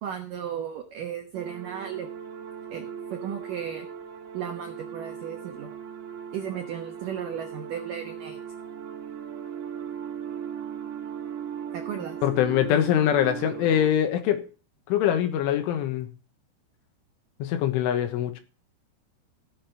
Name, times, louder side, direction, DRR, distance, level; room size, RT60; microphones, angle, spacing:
voice 1, 0.0-2.1 2.7-2.9 3.1-3.9 4.3-5.7 6.3-8.4 11.7-12.2, right 8 dB, 80° right, 1.9 m, -35 dB
sound 1, 1.3-13.9, right 8 dB, 65° right, 3.7 m, -38 dB
voice 2, 12.2-14.4 14.9-16.1 17.4-18.4, left 10 dB, 80° left, 3.7 m, -23 dB
16.5 x 7.6 x 5.3 m
omnidirectional pair, 5.8 m